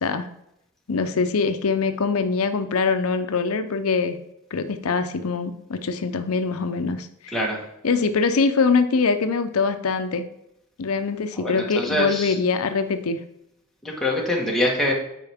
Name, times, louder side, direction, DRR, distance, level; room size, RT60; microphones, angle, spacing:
voice 1, 0.9-4.2 4.5-7.4 7.8-10.2 10.8-13.2, left 4 dB, 85° left, 9 dB, 0.6 m, -23 dB
voice 2, 11.4-12.3 13.8-14.9, left 1 dB, ahead, -3 dB, 1.5 m, -24 dB
9.1 x 4.6 x 3.5 m, 0.80 s
head